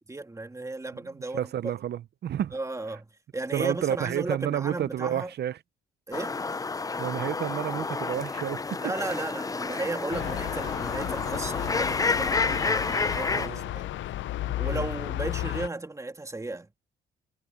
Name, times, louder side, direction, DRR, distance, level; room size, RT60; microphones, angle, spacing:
voice 1, 0.1-1.5 2.5-3.1 3.3-5.3 6.1-6.4 8.8-13.9 14.6-16.7, right 2 dB, 15° right, 2.4 m, -35 dB
voice 2, 1.3-2.6 3.5-5.6 7.0-8.6 13.3-13.6 14.7-14.9, right 10 dB, 55° right, 0.8 m, -30 dB
sound 1, 6.1-13.5, left 4 dB, 15° left, 0.6 m, -30 dB
sound 2, 10.1-15.7, left 14 dB, 75° left, 0.6 m, -33 dB
cardioid pair, 90°, 20 cm